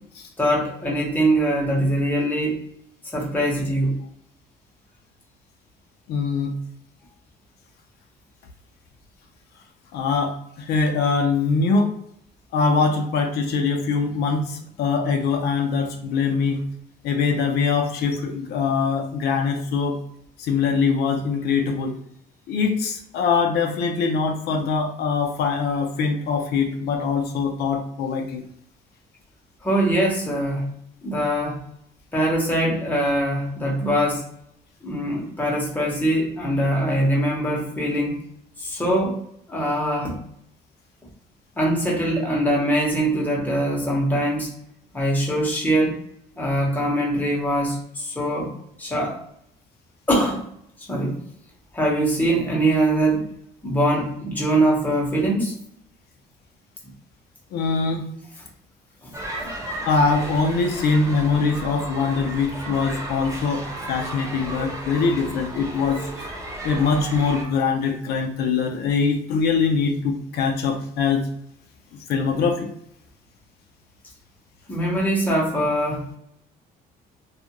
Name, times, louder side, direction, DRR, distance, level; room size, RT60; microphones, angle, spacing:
voice 1, 0.4-2.6 3.1-3.9 29.6-30.7 31.0-31.6 32.1-34.3 34.8-38.2 38.6-39.2 39.5-40.2 41.6-44.5 44.9-46.0 46.4-48.5 48.8-49.2 50.1-50.4 50.9-51.2 51.7-53.3 53.6-55.5 59.0-59.1 59.4-59.5 74.7-76.1, right 1 dB, 10° left, -2 dB, 0.9 m, -22 dB
voice 2, 6.1-6.5 9.9-11.9 12.5-16.6 17.0-20.0 20.4-21.9 22.5-28.4 57.5-58.0 59.9-66.3 66.6-71.3 72.1-72.7, left 5 dB, 70° left, 3 dB, 0.5 m, -23 dB
sound 1, 59.1-67.4, right 1 dB, 20° right, 0.7 m, -34 dB
2.4 x 2.3 x 2.9 m, 0.72 s
cardioid pair, 110°, 17 cm